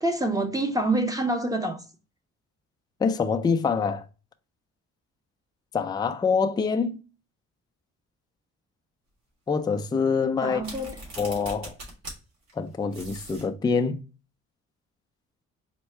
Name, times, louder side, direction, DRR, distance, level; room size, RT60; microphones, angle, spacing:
voice 1, 0.0-1.8 10.4-11.0, right 2 dB, 10° right, 0.7 m, -26 dB
voice 2, 3.0-4.0 5.7-7.0 9.5-10.6 11.2-11.7 12.6-14.0, left 5 dB, 15° left, 0.4 m, -25 dB
sound 1, 10.6-12.2 12.5-12.6 12.9-13.5, right 1 dB, 60° right, 2.1 m, -40 dB
4.4 x 2.2 x 4.3 m
cardioid pair, 90°, 30 cm